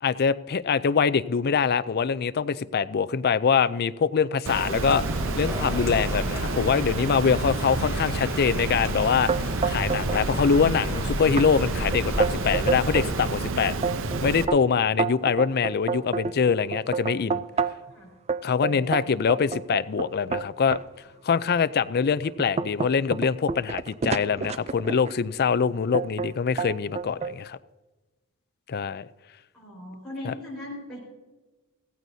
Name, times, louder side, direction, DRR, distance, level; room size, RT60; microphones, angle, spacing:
voice 1, 0.0-5.0 5.4-9.3 9.7-13.7 14.2-17.4 18.4-20.8 21.2-27.6 28.7-29.1 30.2-30.3, left 6 dB, 45° left, 0.4 m, -24 dB
Water, 4.5-14.5, right 3 dB, 60° right, 0.7 m, -30 dB
sound 1, 4.7-13.3, equal, 10° right, 1.7 m, -33 dB
sound 2, 9.3-10.2 10.5-11.0 11.4-11.5 11.9-13.1 13.6-17.9 18.3-20.8 21.5-21.6 22.1-25.2 25.9-26.3 26.6-27.3, right 5 dB, 30° right, 0.4 m, -28 dB
voice 2, 29.5-31.0, left 1 dB, 5° left, 4.5 m, -38 dB
16.0 x 15.5 x 2.7 m
head